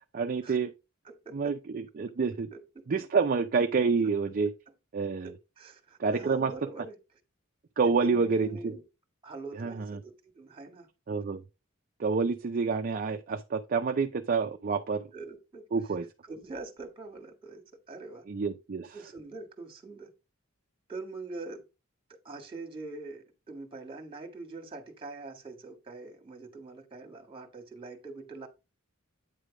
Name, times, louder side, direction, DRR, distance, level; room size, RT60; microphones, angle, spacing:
voice 1, 0.1-0.7 1.3-2.5 2.9-4.5 4.9-5.3 6.0-6.5 7.8-8.7 9.5-10.0 11.1-11.4 12.0-15.0 15.7-16.0 18.3-19.0, right 5 dB, 40° right, 0.4 m, -28 dB
voice 2, 1.0-1.5 2.5-2.9 5.2-7.0 7.8-8.8 9.2-10.9 15.1-15.6 16.3-18.2 18.9-20.1 20.9-21.6 22.2-28.5, right 3 dB, 25° right, 1.7 m, -43 dB
9.0 x 3.3 x 4.9 m
head